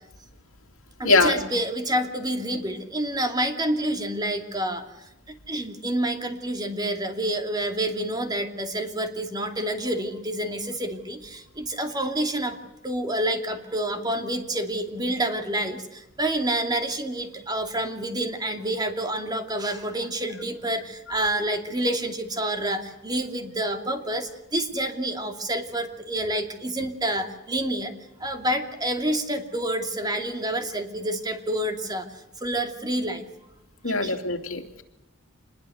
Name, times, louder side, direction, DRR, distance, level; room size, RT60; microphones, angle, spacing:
voice 1, 1.0-4.8 5.5-12.6 12.8-27.9 28.2-32.1 32.4-33.2 33.8-34.2, right 1 dB, 20° right, 5 dB, 2.7 m, -28 dB
voice 2, 33.8-34.8, left 3 dB, 70° left, 4 dB, 3.0 m, -22 dB
26.5 x 21.5 x 8.1 m, 0.94 s
head